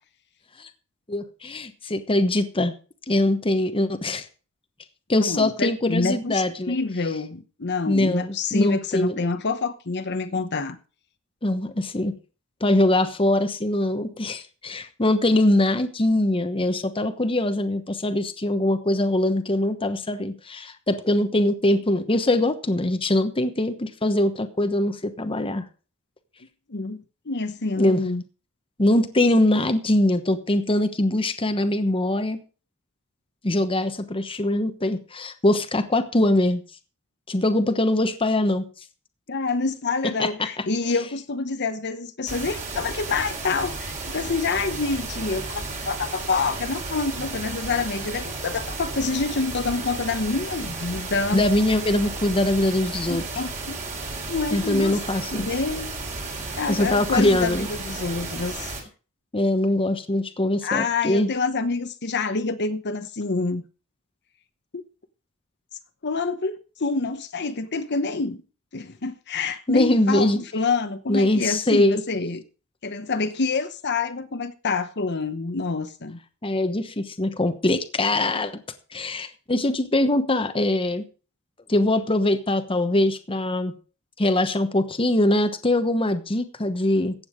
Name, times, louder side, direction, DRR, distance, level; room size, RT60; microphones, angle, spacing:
voice 1, 1.1-2.7 3.1-4.2 5.1-6.8 7.9-9.2 11.4-12.1 12.6-25.6 27.8-28.0 28.8-32.4 33.4-36.6 37.3-38.6 40.2-40.5 51.3-53.2 54.5-55.5 56.7-57.7 59.3-61.3 69.7-70.4 71.1-72.0 76.4-78.5 78.9-81.1 81.7-83.7 84.2-87.1, left 1 dB, 25° left, 1.1 m, -22 dB
voice 2, 5.2-10.8 26.7-28.2 37.5-37.6 39.3-51.4 53.1-53.8 54.3-55.0 55.3-55.9 56.6-58.8 60.6-63.6 64.7-64.8 66.0-68.4 68.7-72.4 72.8-76.2, left 4 dB, 50° left, 1.0 m, -27 dB
sound 1, 42.3-58.8, right 3 dB, 35° right, 3.6 m, -33 dB
15.0 x 8.6 x 5.0 m
head